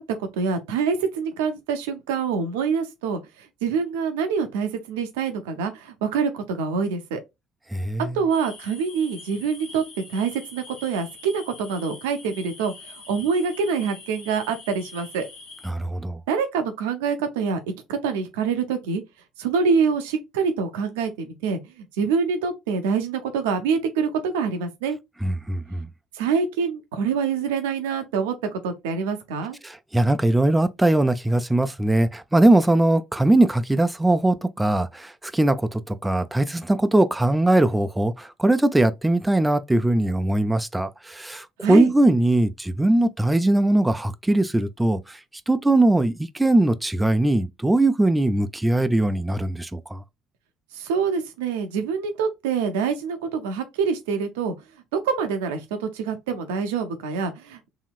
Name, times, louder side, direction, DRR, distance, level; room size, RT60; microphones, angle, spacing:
voice 1, 0.0-7.2 8.1-9.8 10.1-15.3 16.3-19.0 19.4-25.0 26.1-29.6 41.6-41.9 50.7-54.5 55.0-57.7, right 5 dB, 75° right, 0.5 m, -26 dB
voice 2, 7.7-8.2 15.7-16.2 25.2-25.9 29.6-45.2 45.5-50.0, right 1 dB, 10° right, 0.3 m, -21 dB
sound 1, 8.3-15.7, left 3 dB, 70° left, 1.0 m, -44 dB
2.9 x 2.7 x 2.3 m
hypercardioid pair, 55°, 0 cm